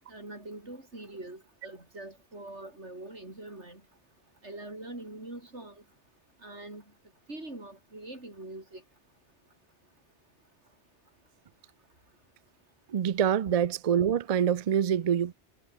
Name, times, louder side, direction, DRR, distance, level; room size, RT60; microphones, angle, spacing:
voice 1, 0.1-3.8 4.4-5.8 6.4-6.8 7.3-8.8, right 2 dB, 85° right, 6.2 m, -43 dB
voice 2, 12.9-15.3, right 9 dB, 50° right, 0.4 m, -25 dB
omnidirectional pair, 1.1 m